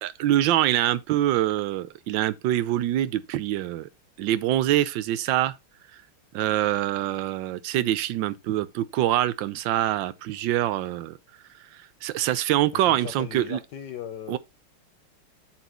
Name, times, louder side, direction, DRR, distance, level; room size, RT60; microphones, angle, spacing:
voice 1, 0.0-3.9 4.2-5.5 6.3-11.2 11.7-13.6 14.3-14.4, right 13 dB, 70° right, 1.2 m, -25 dB
voice 2, 12.7-14.4, left 9 dB, 70° left, 1.1 m, -38 dB
8.1 x 4.3 x 4.3 m
omnidirectional pair, 2.4 m